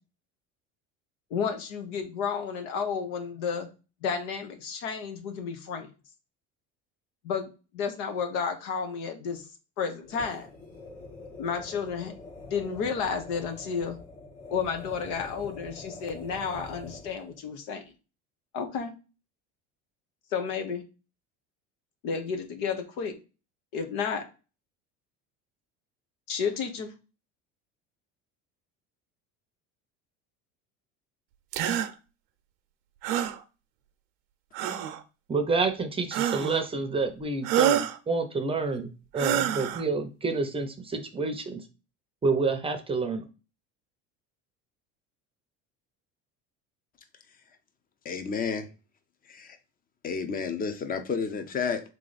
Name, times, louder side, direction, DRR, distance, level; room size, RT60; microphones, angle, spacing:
voice 1, 1.3-3.7 4.0-5.9 7.2-9.5 9.8-10.5 11.4-12.1 12.5-14.0 14.5-17.8 18.5-18.9 20.3-20.8 22.0-23.1 23.7-24.2 26.3-26.9, left 6 dB, 80° left, 6 dB, 1.1 m, -31 dB
sound 1, 10.0-17.4, left 2 dB, 50° left, 1.7 m, -45 dB
sound 2, 31.5-31.9 33.0-33.4 34.5-35.0 36.1-36.6 37.4-38.0 39.1-39.8, right 10 dB, 85° right, 0.7 m, -27 dB
voice 2, 35.3-41.6 42.2-43.2, right 4 dB, 20° right, 7 dB, 0.6 m, -28 dB
voice 3, 48.0-48.7 49.3-49.6 50.0-51.8, left 5 dB, 30° left, 9 dB, 0.8 m, -31 dB
3.8 x 3.2 x 3.9 m, 0.32 s
cardioid pair, 120°, 30 cm